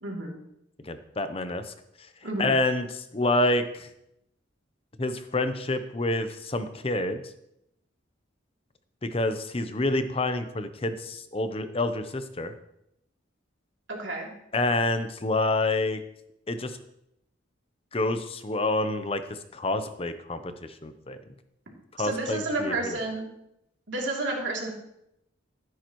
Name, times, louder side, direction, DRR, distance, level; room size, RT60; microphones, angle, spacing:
voice 1, 0.0-0.3 2.2-2.5 13.9-14.3 22.0-23.3 23.9-24.7, right 2 dB, 70° right, -2 dB, 3.0 m, -30 dB
voice 2, 0.8-1.7 2.4-3.9 5.0-7.2 9.0-12.5 14.5-16.0 16.5-16.8 17.9-21.2 21.9-23.0, left 2 dB, 30° left, 9 dB, 0.7 m, -28 dB
15.0 x 9.4 x 3.1 m, 0.80 s
head